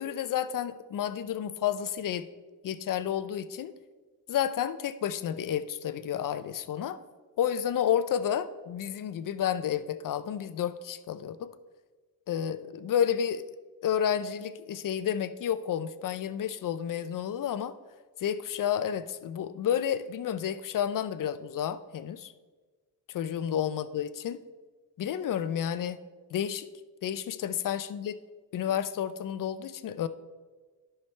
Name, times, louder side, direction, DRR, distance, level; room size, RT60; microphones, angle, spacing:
voice 1, 0.0-2.3 2.6-3.7 4.3-7.0 7.4-11.5 12.3-13.4 13.8-17.7 18.2-22.3 23.1-24.4 25.0-26.0 26.3-26.7 27.0-28.2 28.5-30.1, left 9 dB, 55° left, 13 dB, 0.5 m, -31 dB
11.5 x 6.0 x 3.2 m, 1.3 s
cardioid pair, 110°, 40 cm